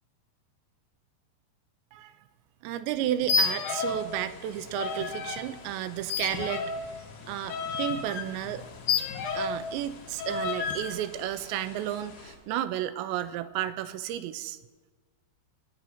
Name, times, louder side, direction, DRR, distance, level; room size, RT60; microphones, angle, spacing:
voice 1, 2.6-6.7 7.3-8.6 9.3-14.6, right 12 dB, 80° right, 12 dB, 2.8 m, -32 dB
sound 1, 3.2-4.1 4.4-5.4 6.1-9.7 10.2-10.9, left 5 dB, 80° left, 1.8 m, -30 dB
sound 2, 3.8-12.4, left 4 dB, 55° left, 2.9 m, -50 dB
19.0 x 10.5 x 4.3 m, 1.3 s
omnidirectional pair, 5.3 m